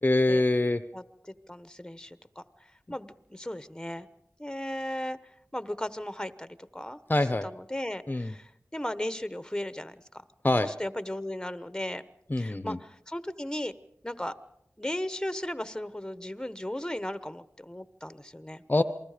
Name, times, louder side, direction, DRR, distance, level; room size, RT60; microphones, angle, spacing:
voice 1, 0.0-0.8 7.1-7.5 8.1-8.3 10.4-10.7 12.3-12.8 18.7-18.8, left 2 dB, 30° left, 11 dB, 0.8 m, -24 dB
voice 2, 0.9-2.4 2.9-4.1 4.4-5.2 5.5-7.0 7.4-9.9 10.6-12.1 12.4-13.7 14.0-14.3 14.8-18.6, left 1 dB, 10° left, 13 dB, 1.1 m, -36 dB
28.0 x 20.5 x 5.1 m, 0.77 s
cardioid pair, 40°, 6 cm